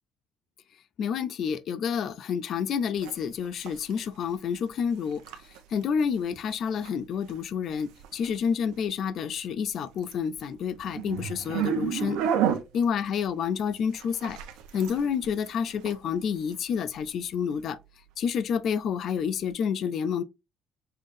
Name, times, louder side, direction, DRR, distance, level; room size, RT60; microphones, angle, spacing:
voice 1, 1.0-5.2 5.7-12.2 12.7-14.4 14.7-17.8 18.2-20.2, left 7 dB, 50° left, 0.4 m, -29 dB
sound 1, 3.0-19.5, right 9 dB, 85° right, 0.8 m, -36 dB
5.4 x 3.5 x 2.6 m
cardioid pair, 140°, 0 cm